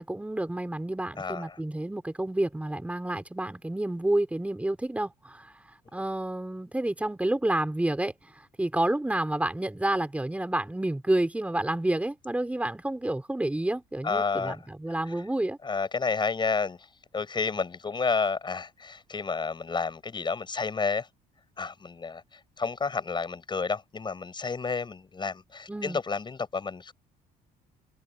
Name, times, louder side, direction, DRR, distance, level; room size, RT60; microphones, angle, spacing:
voice 1, 0.0-5.5 5.9-15.6 25.7-26.0, right 1 dB, 10° right, 4.7 m, -29 dB
voice 2, 1.2-1.6 14.0-14.6 15.6-16.9 17.1-21.1 21.6-22.2 22.6-26.9, left 4 dB, 25° left, 6.9 m, -30 dB
cardioid pair, 110°, 17 cm